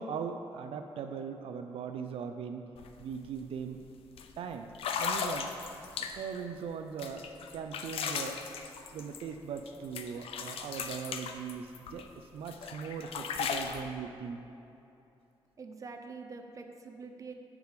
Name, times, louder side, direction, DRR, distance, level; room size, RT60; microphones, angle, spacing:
voice 1, 0.0-2.7 3.0-3.8 4.4-4.7 5.0-5.5 6.0-7.3 7.5-8.5 8.9-14.4, right 6 dB, 80° right, 6 dB, 0.4 m, -40 dB
sound 1, 2.8-2.9 3.2-3.5 4.2-4.3 4.7-6.4 7.0-9.7 10.0-12.0 12.5-13.8, left 6 dB, 80° left, 0.6 m, -36 dB
voice 2, 15.6-17.3, right 4 dB, 35° right, 5 dB, 0.7 m, -45 dB
8.1 x 4.8 x 6.7 m, 2.8 s
wide cardioid pair, 140°, 10 cm